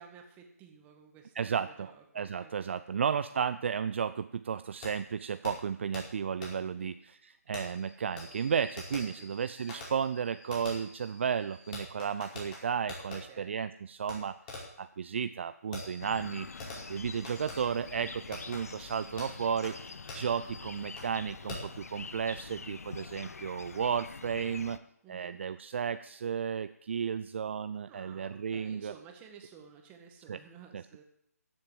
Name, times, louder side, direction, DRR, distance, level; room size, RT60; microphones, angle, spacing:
voice 1, 0.0-3.0 6.6-6.9 9.2-9.4 13.1-13.6 25.0-25.4 27.8-31.0, right 6 dB, 15° right, 3 dB, 1.9 m, -54 dB
voice 2, 1.4-14.4 14.8-24.8 25.1-28.9 30.3-30.4 30.7-30.8, right 7 dB, 45° right, 12 dB, 0.5 m, -33 dB
Fireworks, 4.8-4.9 5.4-5.5 5.9-6.0 6.4-6.5 7.5-13.2 14.1-14.2 14.5-14.8 15.7-21.1 21.5-21.8, left 2 dB, 30° left, 4.9 m, -46 dB
sound 1, 16.0-24.8, left 4 dB, 65° left, 0.9 m, -45 dB
14.0 x 7.7 x 7.7 m, 0.70 s
figure-of-eight pair, 145°, 9 cm